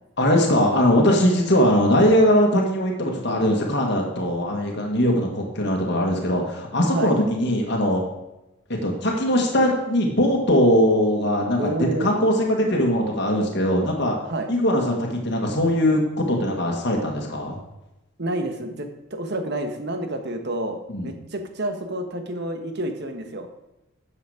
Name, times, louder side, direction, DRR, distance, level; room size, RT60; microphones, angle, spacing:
voice 1, 0.2-8.0 8.8-14.2 14.5-17.6 20.9-21.1, equal, 50° left, 0 dB, 1.7 m, -21 dB
voice 2, 11.6-12.1 14.3-14.5 18.2-23.5, right 1 dB, 50° right, 6 dB, 1.2 m, -29 dB
10.5 x 7.1 x 5.0 m, 0.94 s
head